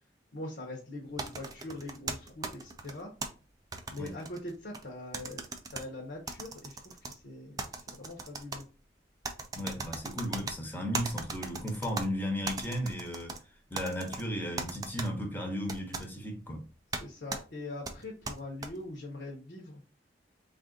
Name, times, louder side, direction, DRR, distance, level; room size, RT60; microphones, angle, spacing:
voice 1, 0.3-3.1 3.9-5.4 5.7-8.6 17.0-19.8, left 2 dB, 65° left, 0.9 m, -42 dB
sound 1, 1.2-3.3 3.7-4.8 5.1-5.8 6.3-7.1 7.6-8.6 9.2-10.5 10.9-12.0 12.4-13.4 13.7-14.2 14.6-15.1 15.7-16.0 16.9-17.0 17.3-17.4 17.8-18.7, right 3 dB, 20° right, 0.4 m, -37 dB
voice 2, 9.5-13.4 13.7-16.7, equal, 10° left, 0.8 m, -35 dB
3.5 x 2.5 x 3.7 m
head